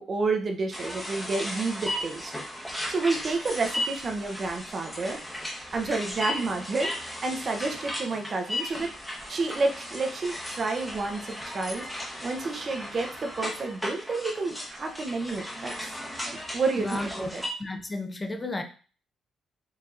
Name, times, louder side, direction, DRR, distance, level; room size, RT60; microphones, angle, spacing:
voice 1, 0.0-2.3 2.9-5.2 5.5-8.9 9.3-11.9 12.2-15.7 16.3-17.4, right 3 dB, 45° right, 0.7 m, -30 dB
sound 1, 0.7-17.5, left 1 dB, 5° left, 0.9 m, -36 dB
voice 2, 16.8-17.3 17.6-18.6, left 2 dB, 20° left, 0.6 m, -33 dB
4.6 x 2.8 x 2.5 m
cardioid pair, 90°, 0 cm